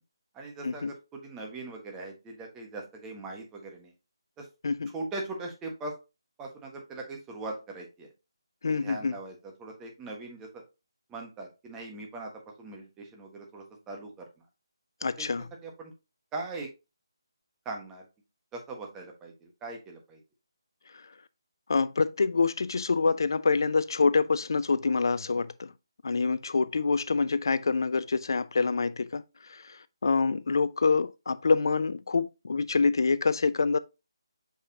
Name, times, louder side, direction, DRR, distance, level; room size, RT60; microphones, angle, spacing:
voice 1, 0.3-3.9 4.4-4.5 4.9-5.9 6.4-8.1 8.7-10.5 11.1-12.3 12.6-14.1 15.2-15.3 15.6-15.9 16.3-16.7 17.6-18.0 18.5-20.2, right 2 dB, 10° right, 1.4 m, -40 dB
voice 2, 8.6-9.1 15.0-15.5 21.7-25.7 26.0-29.2 30.0-33.8, left 4 dB, 55° left, 0.5 m, -26 dB
6.3 x 5.5 x 2.8 m
figure-of-eight pair, 150°, 3 cm